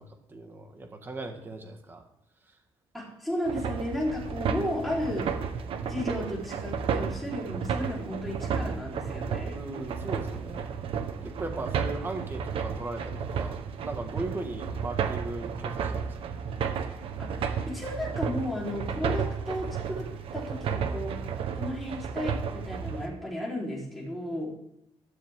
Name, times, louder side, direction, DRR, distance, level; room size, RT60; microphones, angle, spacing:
voice 1, 0.0-2.0 2.5-2.6 9.5-10.7 11.2-16.3, right 2 dB, 20° right, 4 dB, 1.9 m, -38 dB
voice 2, 2.9-5.3 5.9-9.6 17.2-21.2 21.5-24.5, left 1 dB, ahead, -4 dB, 4.3 m, -34 dB
sound 1, 3.4-23.1, right 6 dB, 60° right, 1.3 m, -33 dB
15.5 x 13.0 x 3.8 m, 0.77 s
cardioid pair, 175°, 11 cm